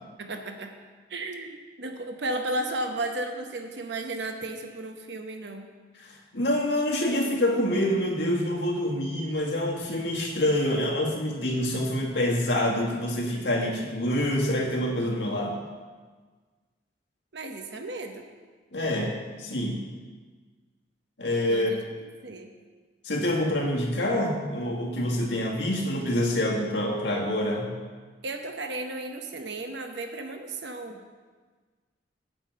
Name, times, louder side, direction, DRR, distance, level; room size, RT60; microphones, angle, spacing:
voice 1, 0.2-0.7 1.1-5.7 17.3-18.2 21.5-21.8 22.2-22.5 28.2-31.0, right 2 dB, 70° right, 5 dB, 0.9 m, -34 dB
voice 2, 6.0-15.6 18.7-19.1 19.4-19.8 21.2-21.8 23.0-27.7, left 1 dB, 85° left, -1 dB, 1.8 m, -26 dB
8.9 x 5.6 x 7.7 m, 1.4 s
head